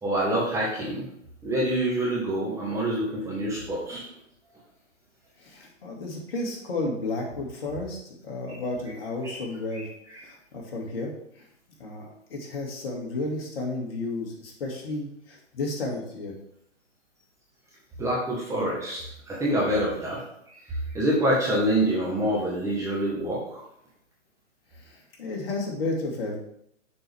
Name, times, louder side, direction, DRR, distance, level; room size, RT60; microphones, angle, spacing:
voice 1, 0.0-1.1 1.4-4.0 8.5-8.6 9.2-9.4 9.7-10.2 18.0-20.2 20.7-23.6, right 1 dB, 10° right, -5 dB, 1.3 m, -26 dB
voice 2, 5.4-9.9 10.2-11.4 11.8-16.3 24.8-26.4, left 2 dB, 50° left, 0 dB, 2.3 m, -32 dB
6.7 x 5.8 x 3.5 m, 0.73 s
hypercardioid pair, 135°, 37 cm